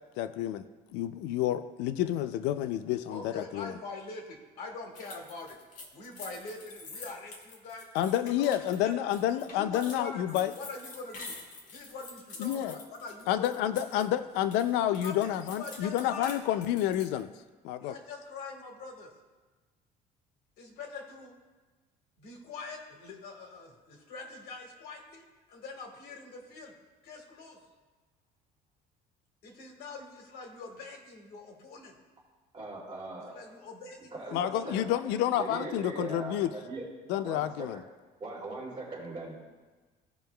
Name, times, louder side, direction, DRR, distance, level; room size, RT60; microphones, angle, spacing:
voice 1, 0.2-0.6 0.9-3.7 7.9-10.5 12.4-12.8 13.3-17.3 17.6-17.9 34.3-36.5 37.1-37.8, left 11 dB, 85° left, 11 dB, 0.4 m, -29 dB
voice 2, 3.1-5.6 5.9-7.9 8.2-9.0 9.5-11.3 11.7-13.5 15.0-16.4 17.8-19.1 20.6-21.3 22.2-25.2 25.5-26.7 27.0-27.6 29.4-31.9 33.3-34.8, left 3 dB, 65° left, 2 dB, 1.6 m, -44 dB
sound 1, 4.9-14.1 14.3-17.2, left 3 dB, 50° left, 1.3 m, -47 dB
voice 3, 32.5-33.3 34.1-34.8 35.3-36.8 37.2-37.7 38.2-39.4, right 2 dB, 30° right, -5 dB, 2.6 m, -40 dB
16.0 x 5.4 x 2.3 m, 1.3 s
cardioid pair, 160°, 17 cm